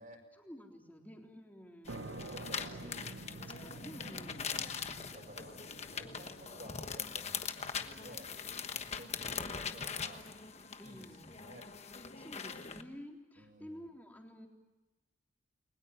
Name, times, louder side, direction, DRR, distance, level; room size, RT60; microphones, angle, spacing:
voice 1, 0.3-2.3 2.8-4.5 10.8-11.3 12.1-14.5, equal, 10° left, 1 dB, 3.7 m, -51 dB
sound 1, 1.9-12.8, left 6 dB, 35° left, 1.2 m, -42 dB
sound 2, 1.9-9.3, right 2 dB, 70° right, 1.0 m, -50 dB
voice 2, 2.3-2.8 4.5-5.6 5.9-8.3 8.6-10.2 10.8-11.6 13.4-13.8, right 1 dB, 45° right, 3 dB, 6.5 m, -54 dB
30.0 x 22.0 x 7.4 m, 1.1 s
head